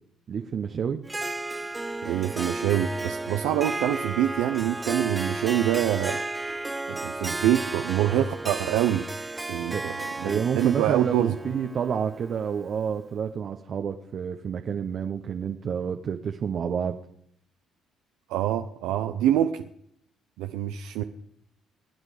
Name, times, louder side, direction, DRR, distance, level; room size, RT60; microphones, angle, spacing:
voice 1, 0.3-1.0 9.7-9.9 10.2-17.0, right 7 dB, 55° right, 6 dB, 1.0 m, -29 dB
Harp, 1.1-12.9, right 2 dB, 15° right, 0.6 m, -33 dB
voice 2, 2.0-6.2 6.9-9.1 9.5-9.9 10.2-11.3 18.3-19.6 20.4-21.0, right 12 dB, 85° right, 6 dB, 0.7 m, -25 dB
22.0 x 9.1 x 5.0 m, 0.68 s
supercardioid pair, 70°, 0 cm